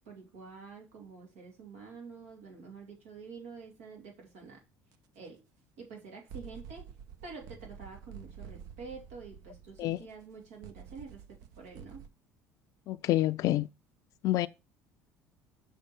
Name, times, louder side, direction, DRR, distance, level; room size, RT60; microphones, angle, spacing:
voice 1, 0.0-4.6 5.1-5.4 5.8-6.9 7.2-12.0, right 5 dB, 85° right, 2.6 m, -48 dB
sound 1, 4.9-5.0 6.3-12.1, right 7 dB, 70° right, 0.8 m, -49 dB
voice 2, 12.9-13.7 14.2-14.5, left 16 dB, 60° left, 0.4 m, -27 dB
6.6 x 5.4 x 4.3 m
hypercardioid pair, 75°, 7 cm